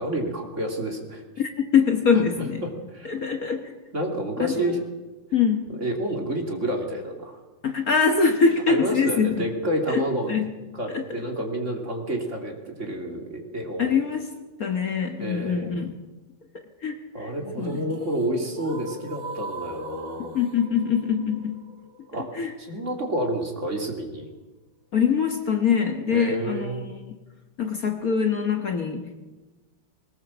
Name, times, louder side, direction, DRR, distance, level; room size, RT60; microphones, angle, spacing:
voice 1, 0.0-1.2 2.6-3.1 3.9-4.8 5.8-7.4 8.7-10.3 10.8-14.0 15.2-15.7 17.1-20.4 22.1-22.3 22.7-24.3 26.1-26.8, right 1 dB, 35° right, 2 dB, 3.2 m, -29 dB
voice 2, 1.4-2.6 3.0-3.7 4.4-4.7 5.3-5.6 7.6-9.4 9.9-10.0 10.3-10.5 10.9-11.0 13.8-14.3 14.6-15.9 16.8-17.3 17.6-17.9 20.3-21.6 22.1-22.5 24.9-27.2 27.6-29.2, left 6 dB, 50° left, 5 dB, 1.7 m, -24 dB
sound 1, 17.3-23.4, right 2 dB, 85° right, 3.2 m, -40 dB
21.0 x 19.5 x 7.3 m, 1.2 s
omnidirectional pair, 2.2 m